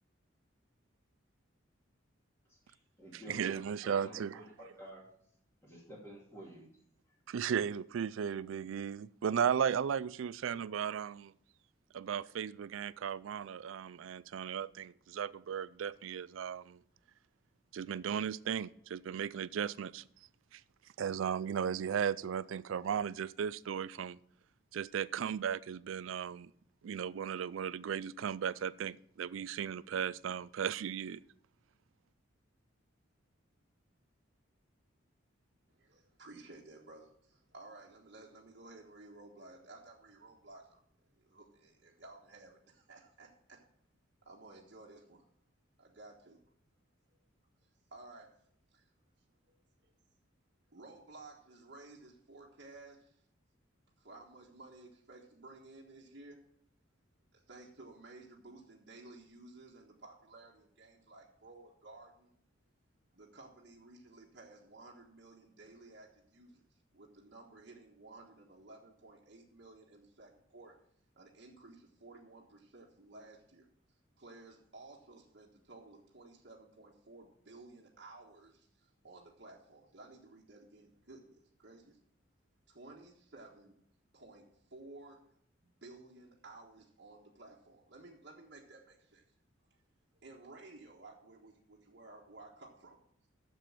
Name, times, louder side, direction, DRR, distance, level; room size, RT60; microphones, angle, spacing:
voice 1, 2.5-5.1 5.6-6.7, equal, 15° left, 2.5 m, -51 dB
voice 2, 3.1-4.4 7.3-11.3 11.9-16.8 17.7-20.0 20.5-20.6 21.0-24.2 24.7-26.5 26.8-31.2, right 8 dB, 80° right, 0.4 m, -36 dB
voice 3, 35.7-40.8 41.2-43.6 44.2-45.2 45.8-46.4 47.1-47.2 47.9-48.3 48.7-48.9 49.8-49.9 50.7-53.2 54.0-56.4 57.3-62.3 63.1-66.6 66.9-70.8 71.1-73.7 74.2-82.0 82.7-83.7 84.1-85.2 85.6-89.2 90.2-93.0, right 2 dB, 55° right, 1.4 m, -55 dB
7.6 x 6.9 x 7.3 m
head